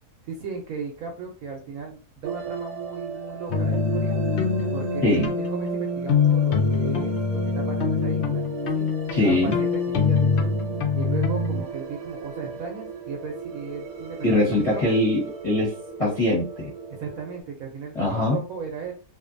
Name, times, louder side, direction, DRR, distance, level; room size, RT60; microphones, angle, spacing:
voice 1, 0.3-4.2 4.7-7.2 7.4-8.5 8.7-8.9 9.2-10.5 10.9-14.8 16.9-18.9, right 5 dB, 70° right, 1 dB, 0.9 m, -36 dB
sound 1, 2.2-17.4, right 5 dB, 85° right, 1.2 m, -35 dB
sound 2, 3.5-11.6, left 5 dB, 75° left, 0.6 m, -24 dB
voice 2, 9.1-9.6 14.2-16.7 17.9-18.4, left 1 dB, 25° left, -5 dB, 0.8 m, -22 dB
2.5 x 2.5 x 2.5 m, 0.36 s
omnidirectional pair, 1.8 m